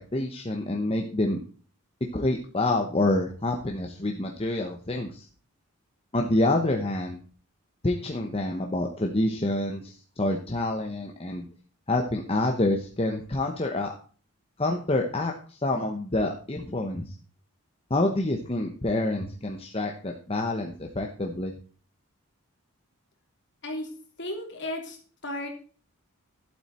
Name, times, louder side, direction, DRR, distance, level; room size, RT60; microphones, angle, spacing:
voice 1, 0.1-1.4 2.1-5.3 6.1-7.2 7.8-11.4 11.9-13.9 14.6-17.1 17.9-21.5, left 2 dB, 25° left, 2 dB, 1.0 m, -27 dB
voice 2, 24.2-25.0 25.2-25.5, left 1 dB, 55° left, 2 dB, 3.1 m, -34 dB
11.5 x 8.1 x 4.4 m, 0.40 s
head